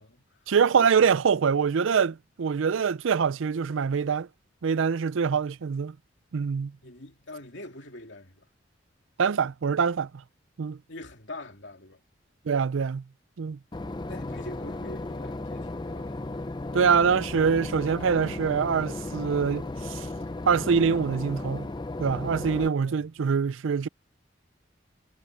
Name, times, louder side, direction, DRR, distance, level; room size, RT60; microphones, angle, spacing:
voice 1, 0.5-4.3 4.6-6.0 6.3-6.7 9.2-10.1 10.6-10.8 12.5-13.0 13.4-13.6 16.7-20.1 20.5-21.7 22.0-23.9, right 6 dB, 75° right, 0.4 m, -24 dB
voice 2, 6.8-8.5 10.9-12.0 14.1-16.4 22.8-23.1, left 2 dB, 65° left, 2.7 m, -44 dB
Boat Water vehicle / Engine, 13.7-22.7, left 2 dB, 20° left, 0.5 m, -35 dB
head